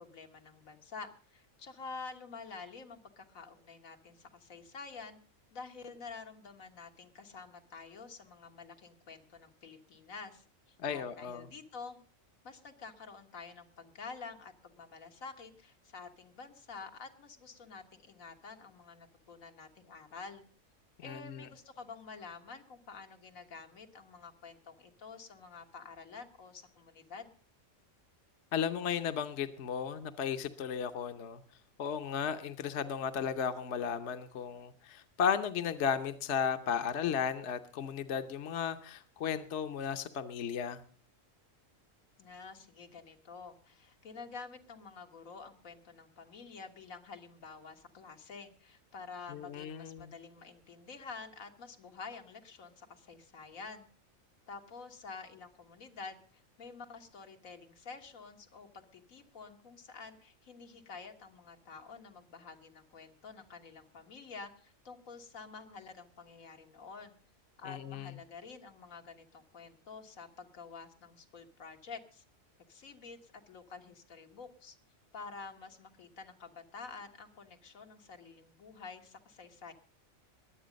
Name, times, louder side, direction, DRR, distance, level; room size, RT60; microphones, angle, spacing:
voice 1, 0.0-5.2 5.5-12.0 12.4-20.4 21.0-27.3 42.2-53.9 54.5-67.2 67.6-72.2 72.7-74.8 75.1-79.7, left 4 dB, 85° left, 4 dB, 1.9 m, -49 dB
voice 2, 10.8-11.5 21.0-21.5 28.5-31.4 31.8-40.8 49.3-50.1 67.6-68.1, left 7 dB, 60° left, 9 dB, 1.1 m, -35 dB
21.5 x 8.3 x 5.1 m, 0.43 s
omnidirectional pair, 1.4 m